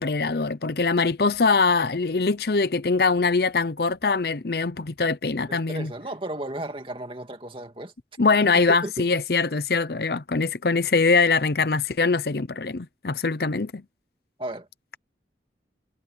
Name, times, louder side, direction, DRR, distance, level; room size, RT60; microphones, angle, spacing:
voice 1, 0.0-5.9 8.2-13.8, left 4 dB, 55° left, 0.7 m, -23 dB
voice 2, 5.5-7.9 8.8-9.1 14.4-14.7, right 1 dB, 30° right, 2.3 m, -34 dB
head